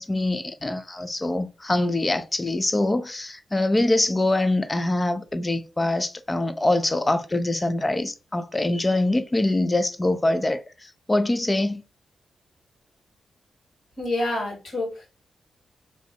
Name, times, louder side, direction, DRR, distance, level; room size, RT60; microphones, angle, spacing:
voice 1, 0.0-11.8, left 2 dB, 25° left, 0.7 m, -24 dB
voice 2, 14.0-15.1, left 2 dB, 70° left, 2.6 m, -28 dB
3.4 x 3.0 x 4.3 m
supercardioid pair, 40°, 0 cm